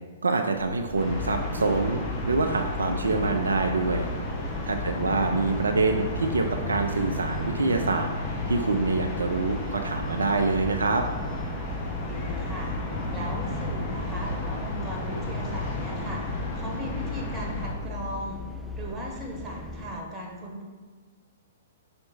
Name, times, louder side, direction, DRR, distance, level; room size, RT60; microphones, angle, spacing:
voice 1, 0.2-4.1 4.6-8.1 8.5-11.0, right 3 dB, 70° right, 4 dB, 0.4 m, -26 dB
sound 1, 0.5-20.0, left 2 dB, ahead, 0.3 m, -43 dB
sound 2, 1.0-17.7, left 2 dB, 30° left, 1.4 m, -32 dB
voice 2, 4.7-5.1 11.9-18.4 18.8-20.7, equal, 15° right, -1 dB, 1.3 m, -38 dB
5.7 x 4.3 x 4.3 m, 1.4 s
figure-of-eight pair, 110°, 0 cm